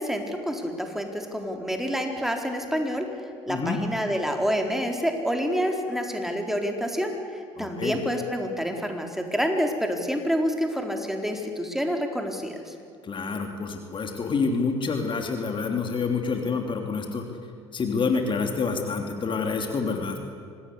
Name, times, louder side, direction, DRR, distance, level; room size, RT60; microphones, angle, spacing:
voice 1, 0.0-3.1 3.5-12.7, equal, ahead, 3 dB, 4.0 m, -28 dB
voice 2, 3.5-3.8 7.6-8.0 13.0-17.2 17.7-20.2, left 4 dB, 35° left, 4 dB, 3.1 m, -27 dB
25.5 x 20.0 x 8.4 m, 2.4 s
figure-of-eight pair, 60°, 14 cm